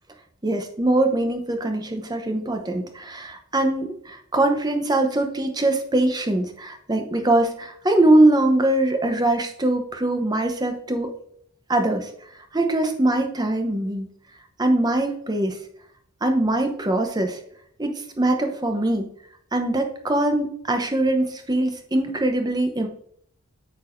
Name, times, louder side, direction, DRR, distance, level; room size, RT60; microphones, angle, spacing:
voice 1, 0.4-11.1 11.7-12.1 12.5-14.1 14.6-15.6 16.2-17.4 17.8-19.1 19.5-22.9, right 1 dB, 20° right, 5 dB, 0.7 m, -22 dB
8.3 x 4.6 x 2.6 m, 0.65 s
head